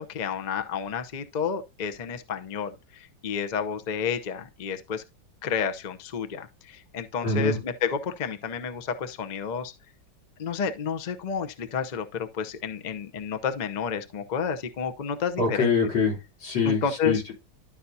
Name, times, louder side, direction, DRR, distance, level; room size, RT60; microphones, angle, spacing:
voice 1, 0.0-5.0 5.4-9.7 10.4-15.7 16.6-17.2, left 6 dB, 65° left, 0.4 m, -30 dB
voice 2, 7.2-7.6 15.4-17.3, left 4 dB, 85° left, 4.3 m, -25 dB
12.0 x 5.7 x 2.7 m
omnidirectional pair, 2.0 m